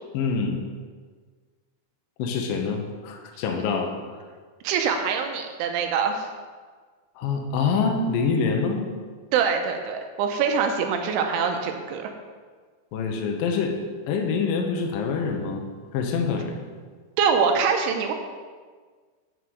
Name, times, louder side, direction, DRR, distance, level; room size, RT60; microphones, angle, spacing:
voice 1, 0.1-0.6 2.2-3.9 7.2-8.9 12.9-13.8 14.1-15.6 15.9-16.6, left 5 dB, 75° left, 2 dB, 2.1 m, -25 dB
voice 2, 4.6-6.3 9.3-12.1 17.2-18.1, right 6 dB, 90° right, 5 dB, 3.1 m, -24 dB
9.6 x 5.5 x 6.4 m, 1.5 s
omnidirectional pair, 5.5 m